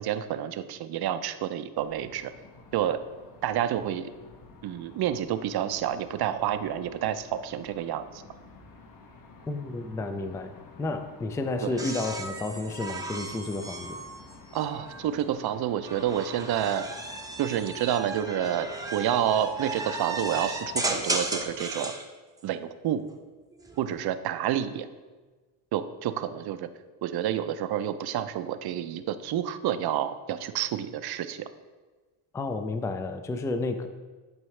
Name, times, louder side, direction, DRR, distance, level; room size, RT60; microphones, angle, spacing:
voice 1, 0.0-2.3 2.7-3.0 3.4-4.1 4.6-8.2 11.6-11.8 14.5-16.9 17.4-21.9 22.4-23.0 23.8-24.9 25.7-26.7 27.0-31.5, right 10 dB, 55° right, 11 dB, 0.6 m, -29 dB
sound 1, 1.8-21.6, left 4 dB, 45° left, 1.1 m, -51 dB
voice 2, 9.5-10.5 10.8-14.0 32.3-33.9, left 2 dB, 5° left, 8 dB, 0.3 m, -31 dB
sound 2, 11.8-15.0 15.8-22.1 23.5-24.0, right 2 dB, 10° right, 0.7 m, -35 dB
11.0 x 4.6 x 3.2 m, 1.3 s
cardioid pair, 95°, 46 cm